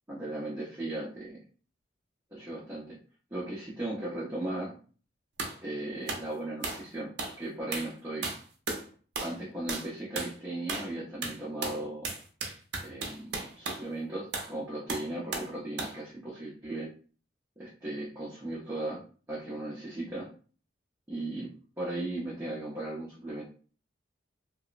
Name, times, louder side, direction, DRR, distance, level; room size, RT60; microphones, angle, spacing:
voice 1, 0.1-1.4 2.3-3.0 3.3-4.7 5.6-7.1 7.4-8.3 9.2-12.1 12.8-13.2 13.6-16.9 17.6-19.0 19.3-20.3 21.1-21.5 21.8-23.4, right 1 dB, 15° right, -8 dB, 0.6 m, -37 dB
sound 1, 5.4-5.6 6.1-6.3 6.6-6.9 7.2-7.4 7.7-7.9 8.2-8.9 9.2-9.4 9.7-9.9 10.2-10.3 10.7-10.9 11.2-13.9 14.3-14.5 14.9-15.5 15.8-16.0, right 3 dB, 60° right, 0.6 m, -35 dB
2.9 x 2.0 x 2.4 m, 0.41 s
head